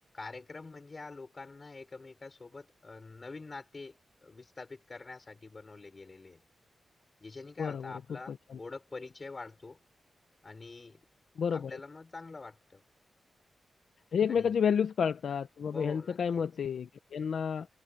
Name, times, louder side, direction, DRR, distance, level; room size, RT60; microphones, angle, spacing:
voice 1, 0.1-4.0 4.2-6.4 7.2-9.8 10.4-11.0 11.5-12.8 14.3-14.5 15.7-16.4, left 3 dB, 30° left, 5.4 m, -46 dB
voice 2, 7.6-7.9 8.3-8.6 11.4-11.8 14.1-17.7, left 7 dB, 75° left, 1.0 m, -30 dB
wide cardioid pair, 165°, 0 cm